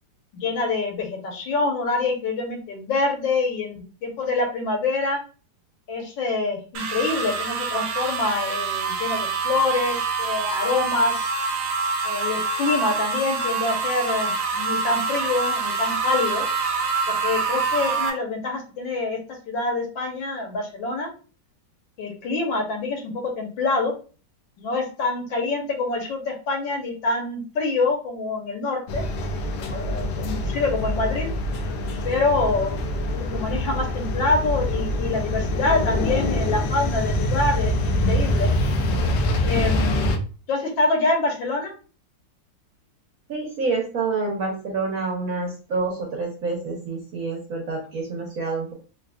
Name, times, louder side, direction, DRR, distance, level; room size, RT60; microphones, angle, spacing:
voice 1, 0.3-5.2 5.9-11.3 12.0-16.4 17.1-19.2 19.5-21.1 22.0-23.9 24.6-29.0 29.6-31.3 32.0-38.5 39.4-40.1 40.5-41.7, left 3 dB, 90° left, 1 dB, 1.7 m, -26 dB
sound 1, 6.7-18.1, right 4 dB, 85° right, 1.5 m, -26 dB
sound 2, 28.9-40.2, left 1 dB, 70° left, 1.1 m, -25 dB
voice 2, 43.3-48.7, right 3 dB, 55° right, -1 dB, 1.1 m, -27 dB
4.0 x 2.8 x 2.3 m, 0.37 s
omnidirectional pair, 2.0 m